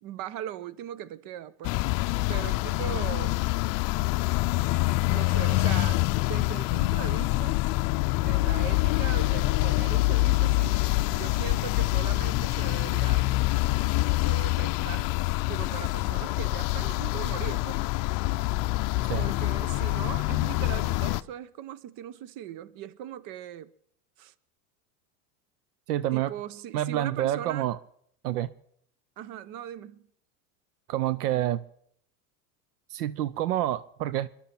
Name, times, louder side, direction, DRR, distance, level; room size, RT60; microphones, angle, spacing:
voice 1, 0.0-1.8 2.3-3.4 4.2-4.4 5.1-7.6 8.2-10.8 11.1-13.4 13.9-15.1 15.5-17.9 19.2-23.7 24.2-24.3 26.1-27.7 29.2-30.0, right 11 dB, 50° right, 0.9 m, -39 dB
sound 1, 1.6-21.2, left 20 dB, 45° left, 0.6 m, -26 dB
voice 2, 25.9-26.3 26.7-27.8 28.2-28.5 30.9-31.6 32.9-34.3, right 13 dB, 80° right, 0.7 m, -27 dB
23.5 x 11.5 x 4.4 m
hypercardioid pair, 105°, 46 cm